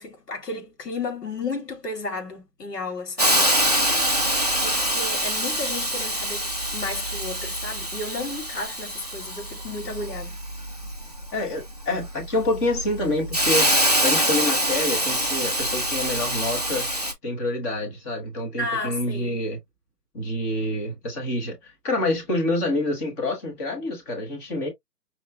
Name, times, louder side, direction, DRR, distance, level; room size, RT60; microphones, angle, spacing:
voice 1, 0.0-3.5 4.6-10.4 18.6-19.4, left 3 dB, 75° left, 2.8 m, -33 dB
Hiss, 3.2-17.1, equal, 30° right, 0.4 m, -25 dB
voice 2, 11.3-13.7 14.0-16.9 17.2-19.6 20.1-24.7, left 1 dB, 10° left, 0.7 m, -27 dB
5.6 x 3.0 x 2.2 m
figure-of-eight pair, 145°, 48 cm